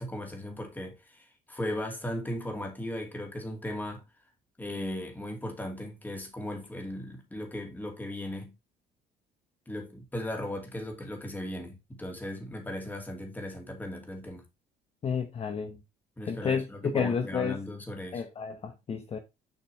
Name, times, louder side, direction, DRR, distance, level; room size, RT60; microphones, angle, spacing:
voice 1, 0.0-4.0 4.6-8.5 9.7-14.4 16.2-18.2, left 1 dB, 10° left, 2.5 m, -37 dB
voice 2, 15.0-15.8 16.3-17.6 18.1-19.2, left 6 dB, 35° left, 0.9 m, -31 dB
6.7 x 5.7 x 3.3 m
cardioid pair, 110°, 17 cm